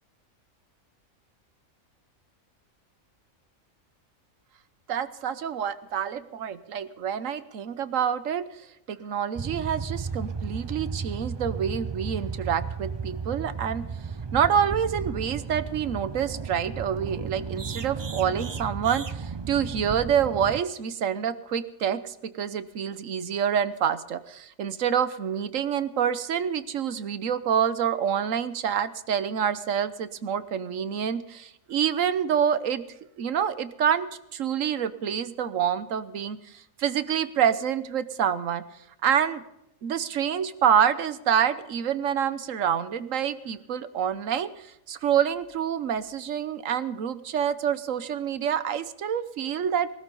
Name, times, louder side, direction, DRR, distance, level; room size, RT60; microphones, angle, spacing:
voice 1, 4.9-13.8 14.3-32.8 33.2-38.6 39.0-39.4 39.8-49.9, right 8 dB, 75° right, 14 dB, 1.3 m, -27 dB
sound 1, 9.4-20.6, right 5 dB, 45° right, 0.3 m, -34 dB
20.0 x 13.0 x 5.4 m, 0.85 s
omnidirectional pair, 1.4 m